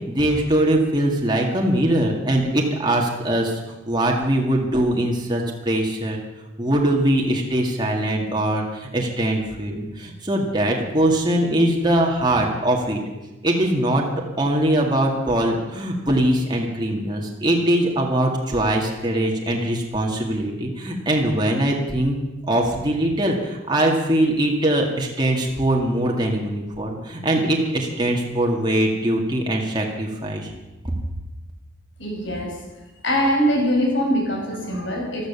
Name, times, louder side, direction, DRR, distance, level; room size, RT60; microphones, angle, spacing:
voice 1, 0.1-3.6 3.9-6.2 6.6-13.0 13.4-14.0 14.4-22.2 22.5-30.5 30.8-30.9, right 1 dB, 20° right, -1 dB, 1.9 m, -22 dB
voice 2, 32.0-32.6 33.0-35.3, equal, 65° left, -1 dB, 5.3 m, -22 dB
14.5 x 13.0 x 7.1 m, 1.0 s
head